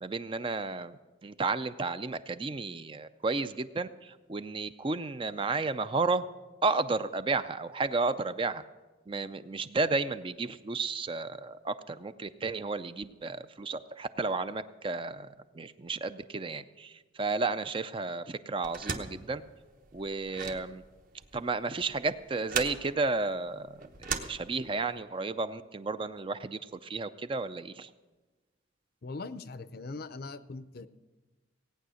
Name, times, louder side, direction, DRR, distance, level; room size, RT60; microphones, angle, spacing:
voice 1, 0.0-6.2 6.6-8.6 9.1-15.3 15.5-19.4 19.9-20.8 21.3-27.9, right 3 dB, 25° right, 12 dB, 0.4 m, -32 dB
sound 1, 18.6-25.0, right 5 dB, 45° right, 1.0 m, -39 dB
voice 2, 29.0-30.9, left 3 dB, 50° left, 14 dB, 0.5 m, -41 dB
17.5 x 9.1 x 6.3 m, 1.2 s
head